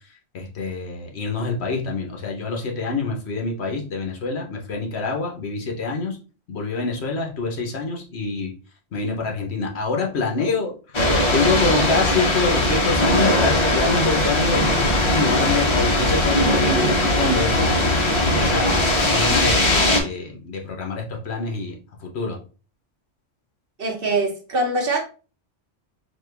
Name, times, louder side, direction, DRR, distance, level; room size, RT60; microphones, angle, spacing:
voice 1, 0.3-6.2 6.5-8.5 8.9-10.7 11.0-14.6 15.1-18.0 18.3-21.7 22.0-22.4, left 3 dB, 65° left, 1.1 m, -26 dB
sound 1, 10.9-20.0, left 1 dB, 30° left, 0.6 m, -19 dB
voice 2, 23.8-25.0, right 2 dB, 55° right, 1.0 m, -23 dB
4.2 x 2.3 x 3.2 m
omnidirectional pair, 1.2 m